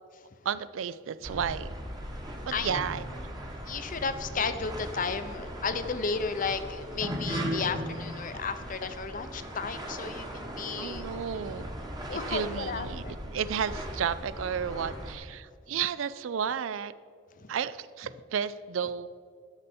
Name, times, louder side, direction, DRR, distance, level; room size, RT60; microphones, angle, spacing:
voice 1, 0.4-1.7 2.4-3.0 10.8-11.7 12.1-16.9 17.5-19.1, right 7 dB, 75° right, 15 dB, 0.4 m, -32 dB
sound 1, 1.2-15.1, equal, 20° right, 1.1 m, -38 dB
voice 2, 3.7-11.1 12.1-13.2 17.4-17.5, left 5 dB, 40° left, 10 dB, 0.6 m, -33 dB
12.0 x 6.8 x 4.2 m, 2.2 s
head